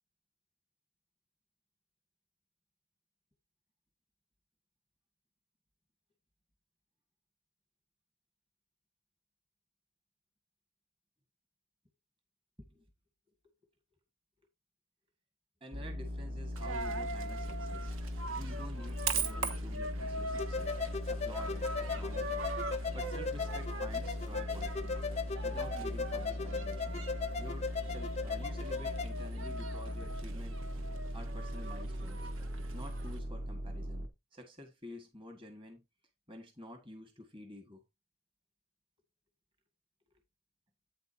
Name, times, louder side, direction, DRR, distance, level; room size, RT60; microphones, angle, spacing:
voice 1, 15.6-17.9 18.4-22.4 22.9-25.0 25.4-27.1 27.4-30.6 31.1-32.2 32.7-35.8 36.3-37.8, left 1 dB, 25° right, 1.8 m, -50 dB
sound 1, 15.7-34.1, left 1 dB, 60° right, 1.3 m, -40 dB
Coin (dropping), 16.6-33.2, right 3 dB, 90° right, 1.3 m, -42 dB
sound 2, 20.4-29.1, left 5 dB, 35° left, 0.4 m, -38 dB
9.0 x 7.8 x 2.8 m
head